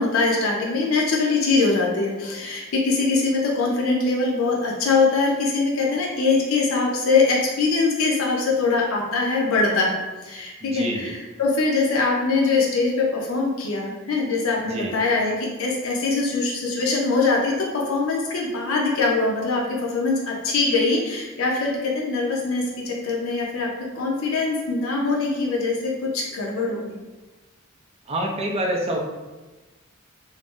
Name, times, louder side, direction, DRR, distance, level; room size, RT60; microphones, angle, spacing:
voice 1, 0.0-23.7 23.9-27.0, left 3 dB, 75° left, -2 dB, 0.5 m, -22 dB
voice 2, 10.6-11.1 14.6-14.9 28.1-29.0, right 1 dB, 30° right, 0 dB, 0.4 m, -27 dB
2.5 x 2.0 x 3.5 m, 1.2 s
head